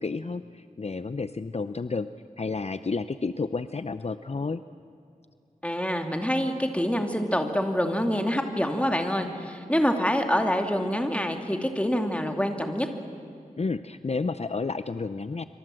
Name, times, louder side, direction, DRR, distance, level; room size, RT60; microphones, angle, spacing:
voice 1, 0.0-2.1 2.4-4.6 13.6-15.4, left 4 dB, 50° left, 12 dB, 0.6 m, -31 dB
voice 2, 5.6-12.9, equal, 10° left, 5 dB, 2.6 m, -26 dB
26.5 x 25.0 x 7.8 m, 2.6 s
wide cardioid pair, 70°, 14 cm